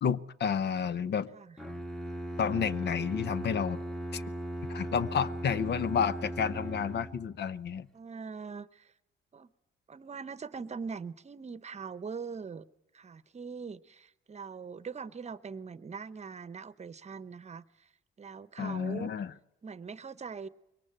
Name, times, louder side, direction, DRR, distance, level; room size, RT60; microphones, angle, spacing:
voice 1, 0.0-1.3 2.4-3.8 4.1-4.2 4.7-7.9 18.6-19.3, left 7 dB, 60° left, 0.8 m, -30 dB
Bowed string instrument, 1.6-7.4, right 1 dB, ahead, 1.3 m, -38 dB
voice 2, 7.9-8.9 9.3-9.5 9.9-12.6 12.9-17.9 18.2-19.1 19.6-20.5, right 5 dB, 35° right, 0.9 m, -42 dB
23.0 x 18.5 x 8.9 m
cardioid pair, 90°, 20 cm